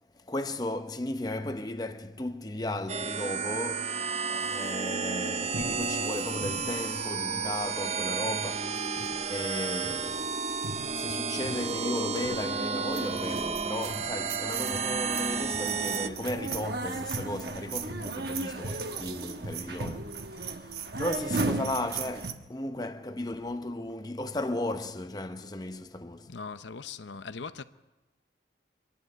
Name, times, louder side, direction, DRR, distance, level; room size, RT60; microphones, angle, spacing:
voice 1, 0.1-10.5 10.8-26.4, left 1 dB, 20° left, 0.7 m, -35 dB
sound 1, 2.9-16.1, right 5 dB, 35° right, 0.7 m, -32 dB
sound 2, 5.5-8.0 8.2-8.7 9.0-9.6 9.8-10.1 10.5-11.1 11.4-11.8 12.2-12.6 12.9-22.3, right 3 dB, 60° right, 1.2 m, -36 dB
voice 2, 26.3-27.6, left 5 dB, 80° left, 0.7 m, -40 dB
25.0 x 11.0 x 9.4 m
head